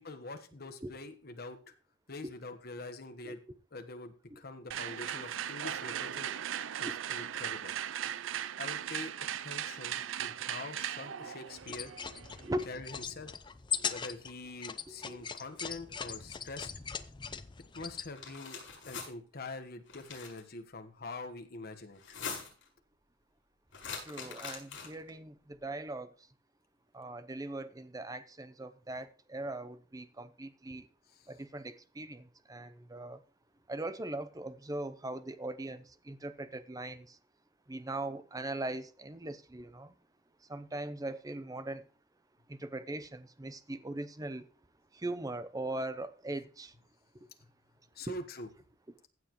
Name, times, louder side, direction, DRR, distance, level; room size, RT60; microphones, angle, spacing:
voice 1, 0.0-1.6 2.1-3.4 3.7-6.3 6.8-7.7 8.6-9.1 9.4-11.9 12.6-13.3 13.9-16.7 17.7-18.6 18.9-22.2 31.1-31.3 47.9-48.5, left 2 dB, 50° left, 1.3 m, -44 dB
sound 1, 4.7-12.7, right 10 dB, 70° right, 0.4 m, -38 dB
sound 2, 11.6-18.1, left 7 dB, 25° left, 0.5 m, -40 dB
voice 2, 14.9-15.2 24.0-26.1 26.9-30.9 31.3-33.2 33.7-37.2 37.7-39.9 40.5-41.8 42.5-44.5 44.9-46.7 48.1-48.2, right 2 dB, 20° right, 0.7 m, -40 dB
sound 3, 18.1-19.1 19.9-20.4 22.0-22.7 23.7-25.1, left 5 dB, 70° left, 5.5 m, -43 dB
15.5 x 7.4 x 3.1 m
head